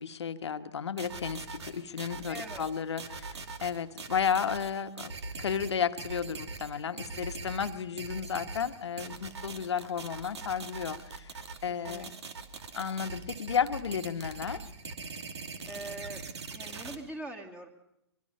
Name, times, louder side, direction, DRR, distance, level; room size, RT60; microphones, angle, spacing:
voice 1, 0.0-5.1 5.4-11.3 11.6-12.1 12.7-14.6, left 7 dB, 70° left, 10 dB, 1.4 m, -33 dB
sound 1, 1.0-17.0, right 4 dB, 70° right, 2.5 m, -42 dB
voice 2, 2.3-2.6 11.7-12.1 15.7-16.2 16.5-17.7, right 1 dB, 10° right, 3 dB, 2.5 m, -42 dB
24.0 x 23.5 x 5.6 m, 0.81 s
hypercardioid pair, 130°, 15 cm